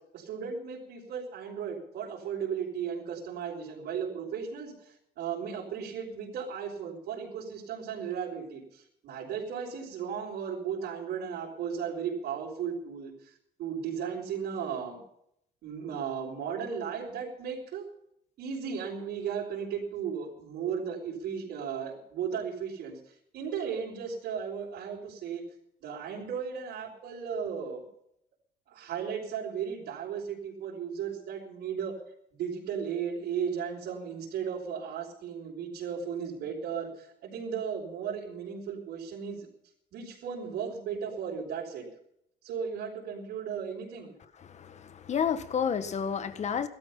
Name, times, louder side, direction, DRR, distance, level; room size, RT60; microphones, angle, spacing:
voice 1, 0.1-13.3 13.6-15.0 15.6-17.8 18.4-23.0 23.3-25.4 25.8-27.8 28.7-31.9 32.3-39.5 39.9-41.9 42.4-44.2, right 7 dB, 70° right, 5.3 m, -35 dB
voice 2, 44.3-46.7, left 7 dB, 45° left, 1.7 m, -31 dB
16.5 x 13.0 x 5.7 m
cardioid pair, 110°, 17 cm